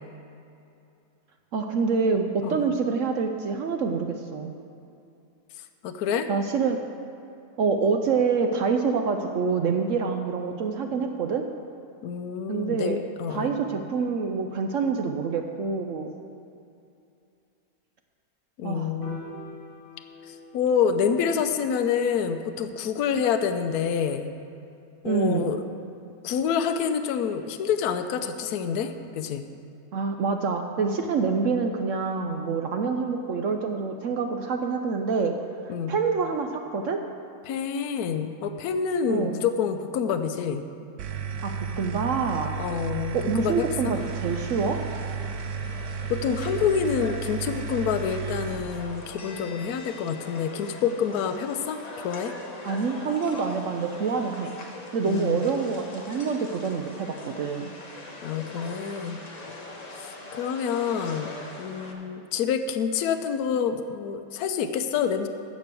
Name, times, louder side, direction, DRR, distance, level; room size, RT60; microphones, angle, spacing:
voice 1, 1.5-4.5 6.3-6.8 7.6-11.4 12.5-13.0 13.3-16.1 18.6-18.9 25.0-25.5 29.9-35.3 35.9-37.0 39.1-39.4 41.4-42.5 43.1-44.8 52.6-54.5 54.9-57.7, right 5 dB, 65° right, 5 dB, 0.8 m, -26 dB
voice 2, 2.4-2.7 5.8-6.3 12.0-13.6 18.6-19.2 20.3-24.3 25.0-25.6 26.2-29.5 35.7-36.0 37.4-40.7 42.6-43.9 46.1-52.3 55.0-55.4 58.2-59.2 59.9-61.3 61.6-65.3, left 7 dB, 70° left, 7 dB, 1.1 m, -27 dB
Piano, 19.0-25.3, equal, 10° right, 2.6 m, -48 dB
sound 1, 41.0-48.6, right 6 dB, 85° right, 1.3 m, -33 dB
sound 2, 43.9-61.9, left 2 dB, 30° left, 1.0 m, -42 dB
15.0 x 5.3 x 6.8 m, 2.6 s
omnidirectional pair, 1.8 m